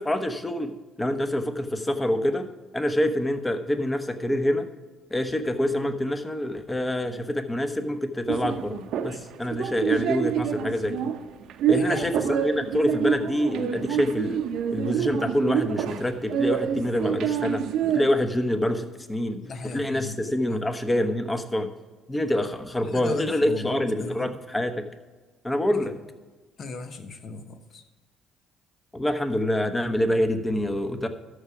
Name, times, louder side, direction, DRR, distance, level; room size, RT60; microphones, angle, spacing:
voice 1, 0.0-2.5 2.7-4.7 5.1-8.7 9.0-11.1 11.7-14.4 14.7-17.6 17.9-19.4 19.7-21.7 22.1-24.8 25.4-26.0 28.9-31.1, left 1 dB, 15° left, 8 dB, 1.2 m, -26 dB
sound 1, 8.3-18.1, right 8 dB, 65° right, 0.8 m, -27 dB
voice 2, 11.7-12.1 19.4-20.6 22.8-24.4 25.7-25.9 26.6-27.8, left 3 dB, 50° left, 8 dB, 1.1 m, -36 dB
13.0 x 4.9 x 5.8 m, 1.3 s
hypercardioid pair, 55°, 0 cm